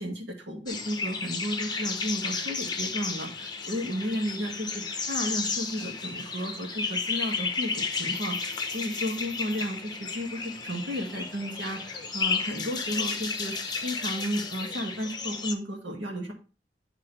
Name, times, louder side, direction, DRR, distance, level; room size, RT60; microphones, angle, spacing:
voice 1, 0.0-13.6 13.8-16.3, equal, 70° right, 0 dB, 2.1 m, -33 dB
sound 1, 0.7-15.5, left 4 dB, 25° left, 0.9 m, -33 dB
11.0 x 3.7 x 3.3 m, 0.34 s
head